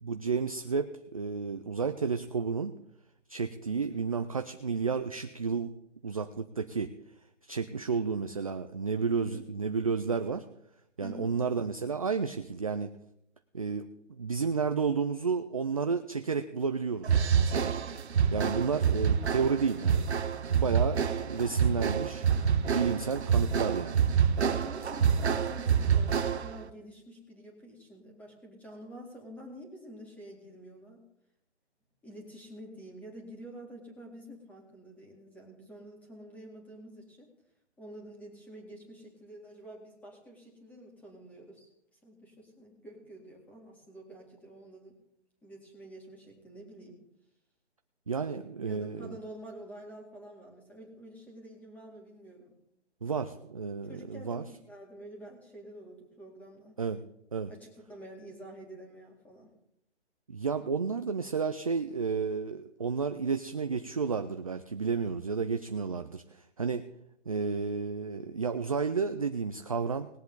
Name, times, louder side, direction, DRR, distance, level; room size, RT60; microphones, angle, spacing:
voice 1, 0.0-2.7 3.3-5.7 6.0-6.9 7.4-10.4 11.0-12.9 13.5-17.7 18.3-20.1 20.4-21.0 21.3-22.2 22.7-24.0 48.1-49.2 53.0-54.4 56.8-57.0 57.3-57.5 60.3-66.9 67.3-70.1, right 5 dB, 30° right, 8 dB, 0.4 m, -31 dB
voice 2, 9.1-9.5 11.0-11.4 24.6-31.0 32.0-37.3 37.8-41.7 42.0-45.0 45.4-47.0 48.6-52.6 53.9-56.8 57.5-59.5, equal, 5° left, -1 dB, 2.1 m, -48 dB
sound 1, 17.0-26.6, right 7 dB, 65° right, 1.1 m, -27 dB
20.0 x 7.9 x 3.8 m, 0.78 s
hypercardioid pair, 155°, 36 cm